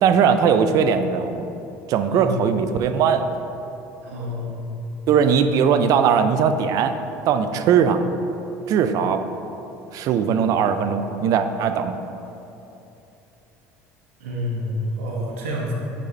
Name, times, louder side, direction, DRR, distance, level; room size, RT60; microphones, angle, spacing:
voice 1, 0.0-1.5 1.9-3.2 5.1-6.9 7.3-8.0 8.7-9.2 9.9-11.9, right 7 dB, 55° right, 9 dB, 0.4 m, -19 dB
voice 2, 2.1-2.4 4.0-4.5 14.2-15.7, equal, 90° right, -3 dB, 1.0 m, -28 dB
8.2 x 4.0 x 3.2 m, 2.9 s
supercardioid pair, 90°, 7 cm